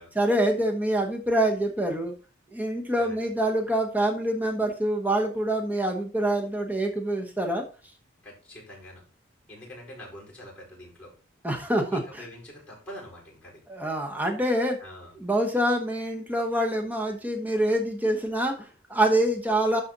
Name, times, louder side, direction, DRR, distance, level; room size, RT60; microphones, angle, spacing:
voice 1, 0.1-2.1 2.5-7.6 11.4-12.3 13.7-14.8 15.1-19.8, right 1 dB, 10° right, 3 dB, 1.1 m, -26 dB
voice 2, 8.2-9.0 9.5-11.1 11.9-13.6 14.8-15.1, left 1 dB, 10° left, -3 dB, 4.7 m, -45 dB
11.5 x 4.2 x 4.0 m, 0.36 s
head